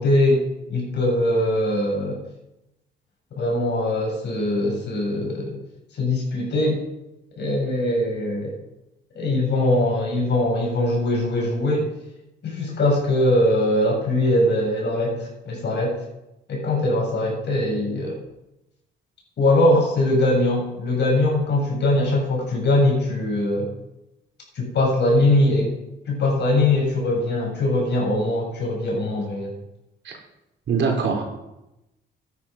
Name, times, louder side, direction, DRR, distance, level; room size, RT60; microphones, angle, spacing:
voice 1, 0.0-2.2 3.3-5.6 5.9-6.8 7.4-8.6 9.1-11.9 12.4-16.0 16.5-18.2 19.4-23.7 24.5-25.7 26.1-29.5, left 1 dB, 60° left, -1 dB, 6.5 m, -21 dB
voice 2, 30.7-31.2, right 5 dB, 65° right, 2 dB, 3.9 m, -22 dB
13.0 x 10.5 x 5.9 m, 0.91 s
cardioid pair, 90°, 20 cm